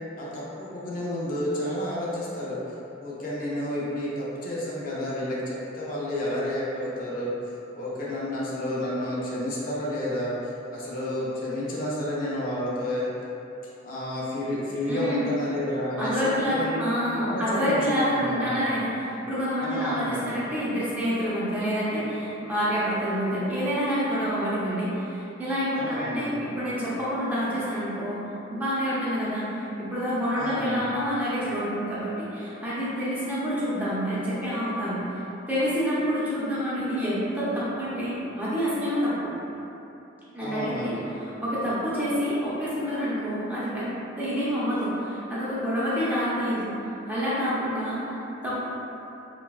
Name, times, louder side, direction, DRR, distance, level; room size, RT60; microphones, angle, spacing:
voice 1, 0.2-2.6 3.0-7.3 7.7-10.3 10.7-13.1 13.8-16.8 17.2-18.6 19.6-20.2 25.8-26.3 30.4-30.8 40.4-41.0, left 1 dB, 45° left, -7 dB, 0.4 m, -30 dB
voice 2, 14.9-15.2 16.0-28.2 28.5-35.0 35.5-39.3 40.3-46.7 47.1-48.1 48.4-48.7, equal, 10° right, -10 dB, 0.5 m, -27 dB
3.2 x 2.1 x 2.3 m, 3.0 s
head